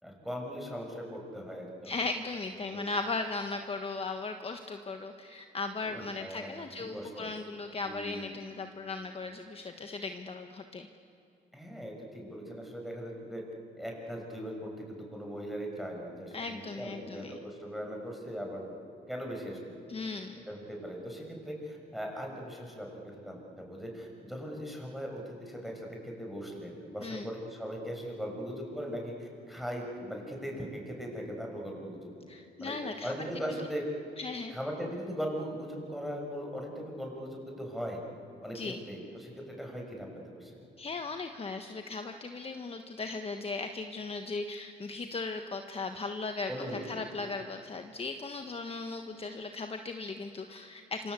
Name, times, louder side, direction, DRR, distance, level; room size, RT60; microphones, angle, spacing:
voice 1, 0.0-1.9 2.7-2.9 5.9-6.7 6.9-7.3 7.8-8.3 11.5-13.4 13.7-18.8 19.1-19.8 20.4-32.1 32.6-33.9 34.5-38.0 38.4-40.5 46.5-47.0, equal, ahead, 1 dB, 6.6 m, -39 dB
voice 2, 1.8-10.9 16.3-17.4 19.9-20.4 27.0-27.3 32.3-33.1 34.2-34.5 38.5-38.8 40.8-51.1, left 3 dB, 30° left, 6 dB, 1.4 m, -37 dB
27.5 x 25.0 x 8.4 m, 2.6 s
cardioid pair, 95°, 19 cm